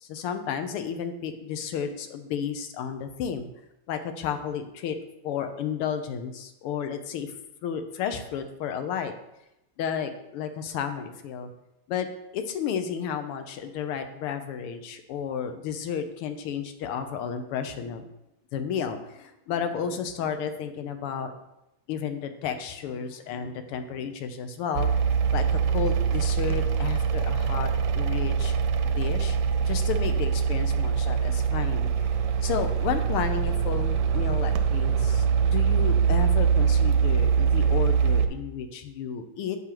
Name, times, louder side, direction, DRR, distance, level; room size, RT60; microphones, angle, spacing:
voice 1, 0.0-3.5 3.9-5.0 5.2-7.3 7.6-9.1 9.8-11.5 11.9-12.1 12.3-18.0 18.5-21.3 21.9-24.9 25.3-27.7 27.9-28.6 28.8-29.4 29.7-31.9 32.4-39.6, left 7 dB, 90° left, 7 dB, 1.7 m, -32 dB
sound 1, 24.7-38.3, right 6 dB, 75° right, 1.2 m, -23 dB
8.7 x 6.1 x 3.0 m, 0.88 s
omnidirectional pair, 2.4 m